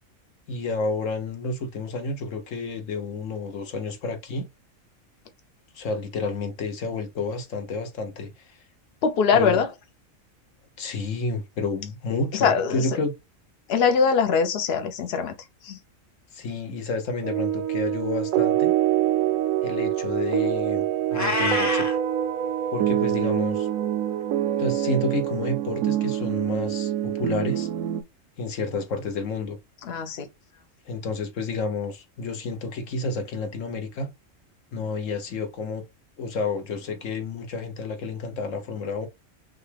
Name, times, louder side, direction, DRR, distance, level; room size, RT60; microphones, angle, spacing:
voice 1, 0.5-4.5 5.7-8.6 9.3-9.6 10.8-13.1 16.3-18.7 19.6-20.8 21.1-22.0 22.7-23.7 24.6-27.7 28.4-29.6 30.9-34.1 34.7-35.8 36.2-39.1, left 3 dB, 70° left, 1.3 m, -30 dB
voice 2, 9.0-9.7 12.3-12.9 13.7-15.3 15.6-15.8 29.8-30.3, left 6 dB, 55° left, 0.9 m, -22 dB
sound 1, 17.2-28.0, right 11 dB, 80° right, 1.0 m, -25 dB
Meow, 21.1-22.0, left 2 dB, 15° left, 0.6 m, -26 dB
5.7 x 2.3 x 3.4 m
omnidirectional pair, 1.4 m